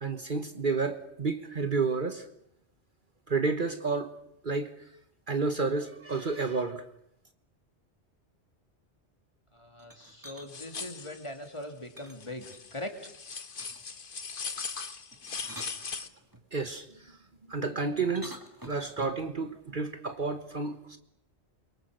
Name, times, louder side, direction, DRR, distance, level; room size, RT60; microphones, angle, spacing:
voice 1, 0.0-2.3 3.3-4.1 4.4-4.7 5.3-6.8 16.5-17.2 17.5-18.4 18.7-21.0, right 4 dB, 45° right, 1.4 m, -30 dB
voice 2, 9.5-12.9, left 1 dB, 25° left, 2.9 m, -41 dB
sound 1, 9.8-10.5 12.0-12.9 13.6-14.0 15.1-16.4 18.0-19.3, right 1 dB, 15° right, 2.2 m, -48 dB
sound 2, 10.5-11.3 11.6-11.7 12.2-16.1, left 5 dB, 50° left, 1.3 m, -39 dB
28.5 x 23.5 x 6.6 m
omnidirectional pair, 1.2 m